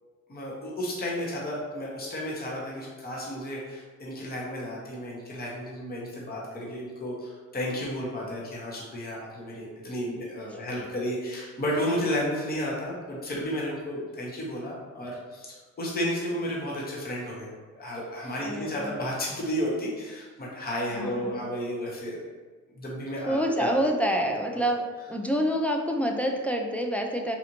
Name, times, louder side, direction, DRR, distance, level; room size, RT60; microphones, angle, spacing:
voice 1, 0.3-17.5 17.8-22.2 22.8-23.7 24.5-24.6, equal, 30° left, -4 dB, 0.9 m, -32 dB
voice 2, 18.4-18.9 20.9-21.4 23.3-24.8 25.1-27.4, equal, 5° left, 1 dB, 0.3 m, -27 dB
4.2 x 2.5 x 2.9 m, 1.4 s
cardioid pair, 90°, 30 cm